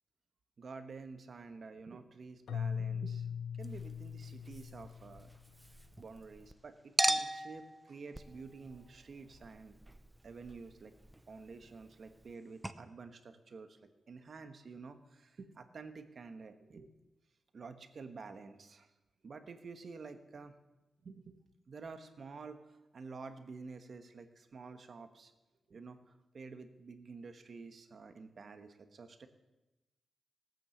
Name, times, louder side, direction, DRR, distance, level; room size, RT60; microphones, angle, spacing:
voice 1, 0.6-3.3 3.6-5.3 6.0-9.8 10.2-10.9 11.3-13.8 14.1-16.9 17.5-18.9 19.2-20.6 21.0-21.4 21.7-25.3 25.7-26.0 26.3-29.3, right 4 dB, 45° right, 8 dB, 1.2 m, -50 dB
Keyboard (musical), 2.5-5.6, left 7 dB, 80° left, 0.7 m, -40 dB
Chink clink, 3.6-6.5 7.0-12.4 12.6-12.7, right 1 dB, 10° right, 0.6 m, -40 dB
17.5 x 9.2 x 7.2 m, 1.0 s
wide cardioid pair, 155°, 0 cm